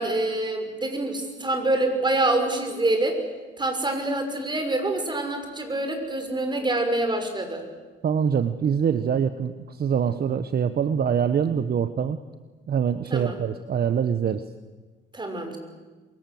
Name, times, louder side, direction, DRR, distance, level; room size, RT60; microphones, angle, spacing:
voice 1, 0.0-3.2 3.6-7.6 13.1-13.4 15.1-15.6, right 2 dB, 20° right, 5 dB, 6.1 m, -26 dB
voice 2, 8.0-12.2 12.7-14.4, right 7 dB, 50° right, 11 dB, 1.2 m, -24 dB
28.0 x 23.5 x 7.9 m, 1.3 s
cardioid pair, 90°, 20 cm